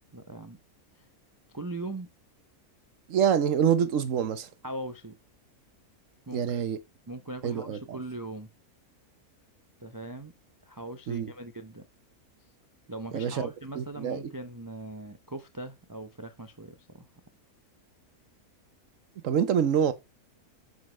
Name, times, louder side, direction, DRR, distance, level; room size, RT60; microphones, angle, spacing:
voice 1, 0.1-0.6 1.5-2.1 4.6-5.2 6.3-6.6 7.1-8.5 9.8-10.3 10.7-11.9 12.9-17.1, right 2 dB, 30° right, 0.3 m, -40 dB
voice 2, 3.1-4.5 6.3-6.8 7.4-8.0 11.1-11.3 13.1-13.5 13.7-14.3 19.2-19.9, right 8 dB, 60° right, 1.2 m, -26 dB
7.3 x 6.1 x 4.4 m
omnidirectional pair, 1.6 m